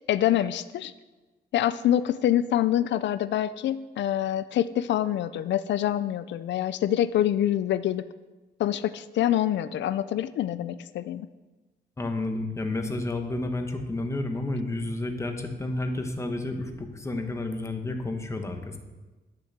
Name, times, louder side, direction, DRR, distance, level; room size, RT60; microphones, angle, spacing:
voice 1, 0.1-0.9 1.5-8.0 8.6-11.3, left 11 dB, 85° left, 13 dB, 0.4 m, -26 dB
voice 2, 12.0-18.8, left 2 dB, 15° left, 4 dB, 1.0 m, -31 dB
11.5 x 6.8 x 6.6 m, 1.2 s
wide cardioid pair, 170°, 18 cm